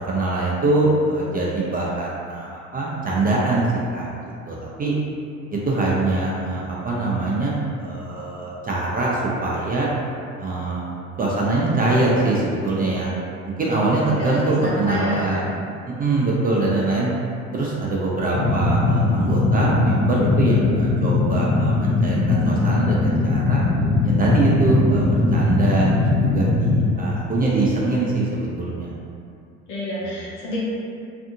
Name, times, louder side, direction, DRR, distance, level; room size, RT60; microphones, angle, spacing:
voice 1, 0.1-3.7 3.9-4.1 4.5-4.9 5.5-9.9 10.4-13.1 13.6-15.4 15.9-17.1 17.5-23.6 24.0-25.9 26.2-28.9 30.0-30.1, right 2 dB, 25° right, -5 dB, 0.5 m, -23 dB
voice 2, 14.1-15.4 29.7-30.6, left 1 dB, 85° left, -7 dB, 0.9 m, -29 dB
sound 1, 18.3-26.9, left 2 dB, 30° left, 0.6 m, -20 dB
2.6 x 2.5 x 2.6 m, 2.4 s
hypercardioid pair, 75°, 35 cm